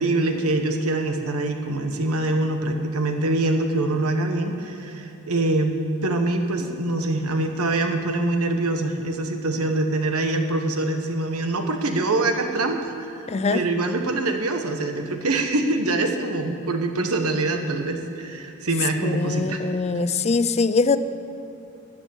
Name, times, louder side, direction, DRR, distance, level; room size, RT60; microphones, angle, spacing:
voice 1, 0.0-5.8 6.0-19.6, right 2 dB, 90° right, 5 dB, 1.3 m, -24 dB
voice 2, 13.3-13.6 19.0-21.0, left 4 dB, 30° left, 13 dB, 0.4 m, -22 dB
15.5 x 9.3 x 7.2 m, 2.9 s
head